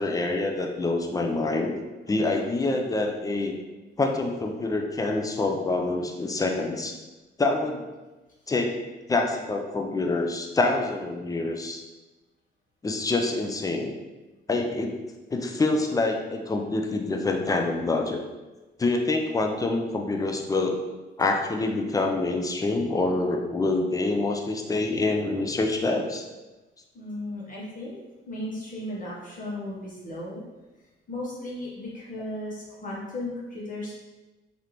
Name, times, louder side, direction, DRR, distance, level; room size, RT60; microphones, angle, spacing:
voice 1, 0.0-1.8 2.1-3.5 4.0-6.9 7.4-7.8 8.5-8.7 9.1-11.8 12.8-14.0 14.5-14.9 15.3-18.2 18.8-20.8 21.2-26.2, left 2 dB, 20° left, 3 dB, 0.4 m, -26 dB
voice 2, 26.9-28.0 28.3-30.4 31.1-33.9, left 1 dB, 40° left, -6 dB, 1.0 m, -35 dB
3.2 x 2.6 x 2.9 m, 1.1 s
cardioid pair, 90°, 20 cm